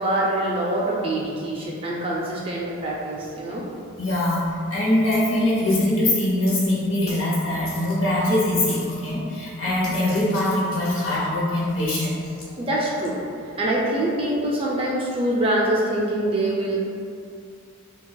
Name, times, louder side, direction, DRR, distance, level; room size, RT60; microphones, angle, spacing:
voice 1, 0.0-3.6 12.5-13.2 13.6-16.8, right 1 dB, 25° right, -4 dB, 0.4 m, -24 dB
sound 1, 2.6-14.4, left 2 dB, 85° left, 1.0 m, -44 dB
voice 2, 4.0-12.2, left 1 dB, 65° left, -6 dB, 0.9 m, -22 dB
5.1 x 2.3 x 2.2 m, 2.3 s
head